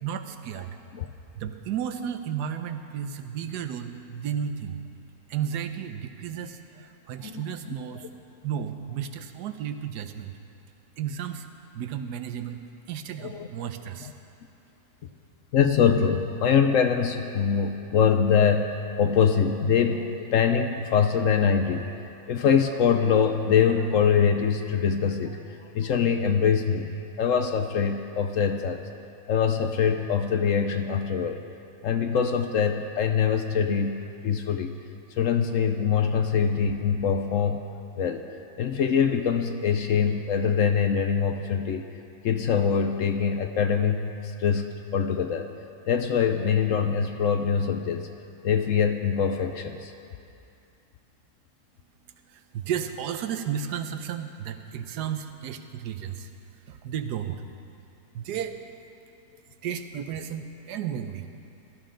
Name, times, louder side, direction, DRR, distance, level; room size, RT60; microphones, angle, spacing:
voice 1, 0.0-0.8 1.3-4.8 5.3-8.1 8.4-10.4 11.0-11.5 11.7-14.1 52.3-56.3 56.7-57.4 58.1-58.6 59.6-61.3, right 8 dB, 85° right, 9 dB, 1.3 m, -33 dB
voice 2, 7.2-7.7 13.2-13.5 14.0-14.1 15.5-21.9 22.3-26.9 27.2-28.8 29.3-31.4 31.8-34.8 35.1-37.6 38.0-38.2 38.6-41.8 42.2-45.5 45.9-48.1 48.4-49.9, left 7 dB, 65° left, 7 dB, 0.9 m, -24 dB
17.5 x 12.5 x 3.8 m, 2.6 s
omnidirectional pair, 1.7 m